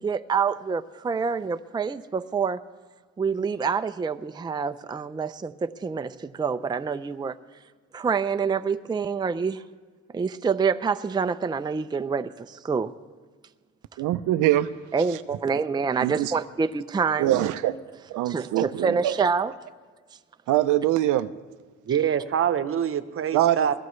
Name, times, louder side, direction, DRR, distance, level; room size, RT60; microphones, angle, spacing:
voice 1, 0.0-2.6 3.2-7.4 7.9-9.6 10.1-13.0 14.9-17.5 18.3-19.5, right 5 dB, 15° right, 0.4 m, -27 dB
voice 2, 14.0-14.7 16.0-16.3 17.2-17.8 18.1-19.2 20.5-21.3 23.3-23.8, right 14 dB, 85° right, 0.6 m, -23 dB
voice 3, 21.9-23.8, right 8 dB, 45° right, 0.9 m, -25 dB
21.0 x 15.5 x 3.2 m
cardioid pair, 90°, 30 cm